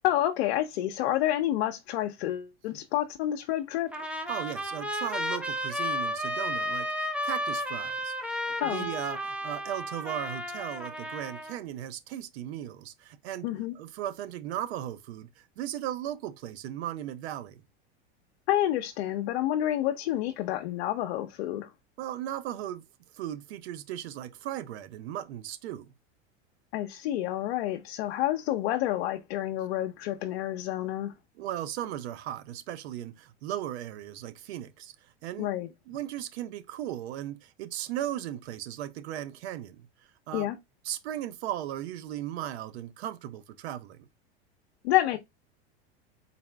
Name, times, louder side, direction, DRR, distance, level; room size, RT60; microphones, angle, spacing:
voice 1, 0.0-3.9 8.6-8.9 13.4-13.7 18.5-21.7 26.7-31.1 35.4-35.7 40.3-40.6 44.8-45.2, left 13 dB, 70° left, 0.6 m, -29 dB
Trumpet, 3.9-11.6, left 1 dB, 5° right, 0.5 m, -33 dB
voice 2, 4.3-8.3 8.6-13.5 13.8-17.6 22.0-22.8 23.1-25.9 31.4-34.9 35.2-35.5 35.9-39.9 40.3-40.5 40.8-44.1, right 12 dB, 80° right, 0.7 m, -37 dB
4.1 x 2.5 x 3.3 m
supercardioid pair, 115°, 32 cm